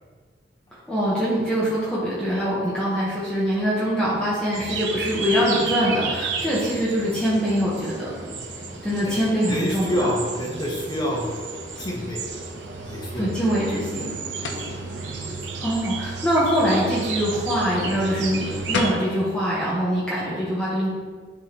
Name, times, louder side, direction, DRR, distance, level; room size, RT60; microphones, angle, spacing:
voice 1, 0.9-8.1 8.8-10.1 13.1-14.1 15.6-20.9, equal, 5° left, -9 dB, 1.2 m, -23 dB
sound 1, 4.5-18.9, right 4 dB, 80° right, 0.8 m, -32 dB
voice 2, 9.5-12.2 12.8-13.3 14.4-14.8, equal, 25° left, -4 dB, 1.3 m, -28 dB
sound 2, 14.4-14.7 18.4-18.5 18.7-19.1, left 3 dB, 85° left, 0.6 m, -28 dB
10.5 x 3.6 x 3.0 m, 1.5 s
head